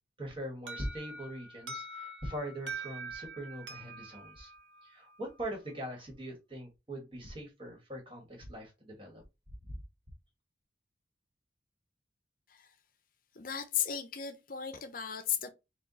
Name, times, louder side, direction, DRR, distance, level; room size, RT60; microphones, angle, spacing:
voice 1, 0.2-4.5 4.8-9.2 9.7-9.8, right 1 dB, 30° right, 1.5 m, -42 dB
Alarm, 0.7-5.5, right 2 dB, 85° right, 0.8 m, -45 dB
voice 2, 13.4-15.5, left 9 dB, 50° left, 0.6 m, -35 dB
4.4 x 2.3 x 3.9 m
head